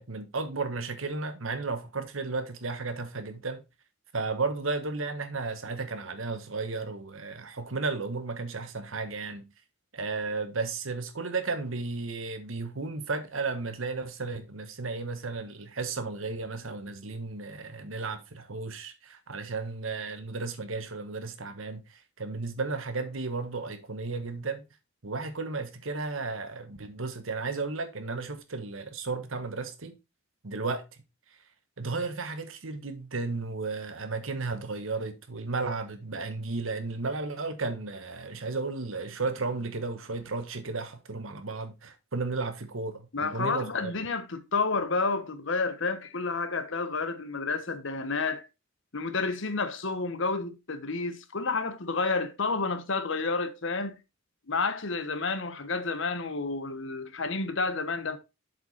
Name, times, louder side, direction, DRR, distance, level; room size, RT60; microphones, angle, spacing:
voice 1, 0.0-3.6 4.1-9.5 9.9-24.6 25.0-30.0 30.4-30.8 31.8-43.9, right 3 dB, 75° right, 1.3 m, -34 dB
voice 2, 43.1-48.4 48.9-54.0 54.5-58.2, left 4 dB, 65° left, 1.1 m, -30 dB
7.5 x 5.0 x 4.1 m
head